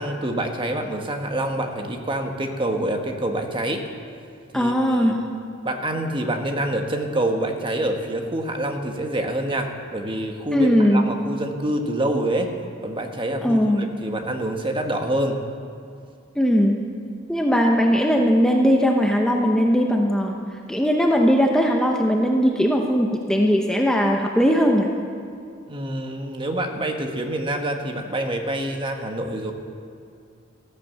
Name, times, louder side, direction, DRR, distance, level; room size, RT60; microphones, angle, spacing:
voice 1, 0.0-3.8 4.5-4.7 5.6-12.5 12.8-15.4 25.7-29.5, right 1 dB, 25° right, 4 dB, 1.3 m, -26 dB
voice 2, 4.5-5.2 10.5-11.1 13.4-13.9 16.4-16.8 17.3-20.4 20.7-24.9, equal, 5° left, 1 dB, 0.9 m, -19 dB
14.0 x 12.5 x 7.5 m, 2.4 s
head